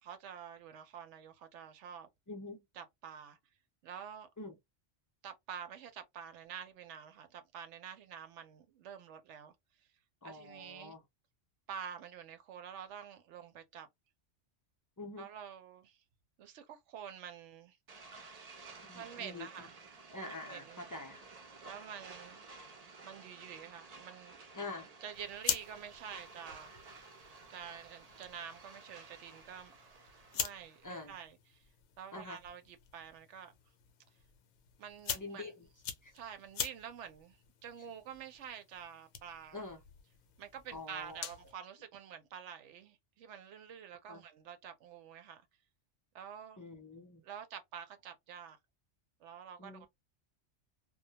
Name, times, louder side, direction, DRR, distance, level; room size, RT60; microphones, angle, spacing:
voice 1, 0.0-2.1 2.8-3.4 3.8-4.3 5.2-9.5 10.2-11.0 11.7-13.9 15.2-16.0 16.4-17.8 18.9-20.9 21.6-22.5 23.0-24.4 24.8-26.7 27.5-29.8 30.3-31.7 32.0-33.5 34.8-35.5 36.1-39.6 40.4-45.4 46.1-46.6 47.2-48.6 49.2-49.9, right 8 dB, 75° right, 0.9 m, -48 dB
voice 2, 2.3-2.6 4.4-4.5 10.2-11.0 15.0-15.3 18.9-19.7 20.1-21.3 24.5-24.9 30.8-31.2 32.1-32.4 35.1-35.7 36.0-36.1 37.8-37.9 39.5-39.8 40.7-41.2 44.1-44.2 46.6-47.2 49.6-49.9, left 2 dB, 30° left, 0.3 m, -46 dB
sound 1, 17.9-30.9, right 3 dB, 50° right, 0.4 m, -54 dB
sound 2, 25.1-41.5, left 8 dB, 75° left, 0.9 m, -45 dB
2.2 x 2.1 x 2.7 m
omnidirectional pair, 1.2 m